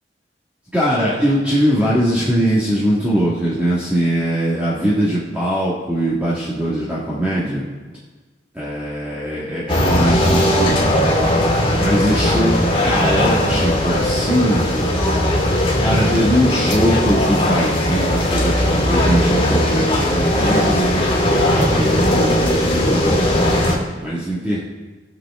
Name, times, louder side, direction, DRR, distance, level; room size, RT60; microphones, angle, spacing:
voice 1, 0.7-7.6 8.5-12.6 12.8-14.7 15.8-23.5 24.0-24.6, equal, 10° right, -8 dB, 1.9 m, -21 dB
sound 1, 9.7-23.8, left 1 dB, 30° left, 2.3 m, -18 dB
20.0 x 7.1 x 3.7 m, 1.3 s
head